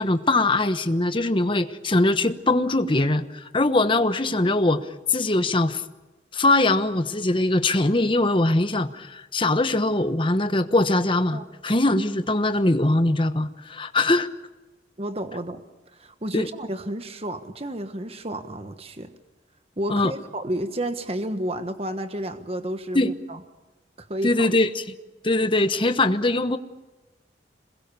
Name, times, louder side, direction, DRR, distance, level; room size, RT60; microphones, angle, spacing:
voice 1, 0.0-5.8 6.3-14.3 16.3-16.5 19.9-20.1 22.9-23.1 24.2-24.8 25.2-26.6, left 2 dB, 30° left, 10 dB, 1.1 m, -22 dB
voice 2, 15.0-15.6 15.9-19.1 19.8-23.4 24.0-24.5, right 1 dB, 35° right, 8 dB, 1.3 m, -31 dB
27.5 x 21.0 x 7.0 m, 1.1 s
head